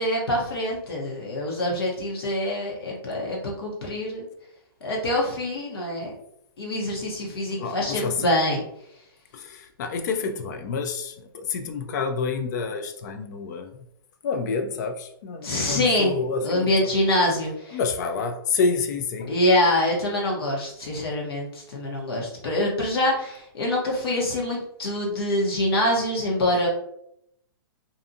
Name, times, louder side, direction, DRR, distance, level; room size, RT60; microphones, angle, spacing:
voice 1, 0.0-4.3 4.8-6.2 6.6-8.6 15.4-16.1 16.4-17.8 19.3-26.7, left 1 dB, 75° left, -2 dB, 0.9 m, -25 dB
voice 2, 7.6-8.2 9.3-13.8 14.2-16.9 17.7-19.3, left 5 dB, 45° left, 6 dB, 0.4 m, -28 dB
2.6 x 2.3 x 2.6 m, 0.75 s
hypercardioid pair, 145°, 13 cm